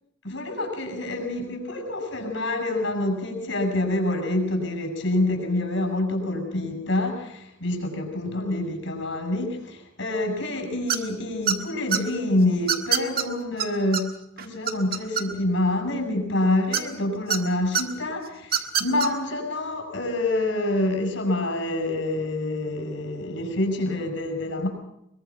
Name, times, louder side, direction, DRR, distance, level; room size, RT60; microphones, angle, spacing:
voice 1, 0.2-24.7, left 1 dB, 70° left, 4 dB, 6.0 m, -27 dB
sound 1, 10.9-11.2 11.5-12.0 12.7-13.2 13.6-13.7 13.9-14.0 14.4-15.5 16.7-17.4 17.7-17.8 18.4-19.1, right 8 dB, 50° right, 1.6 m, -24 dB
22.5 x 22.0 x 5.9 m, 0.81 s
head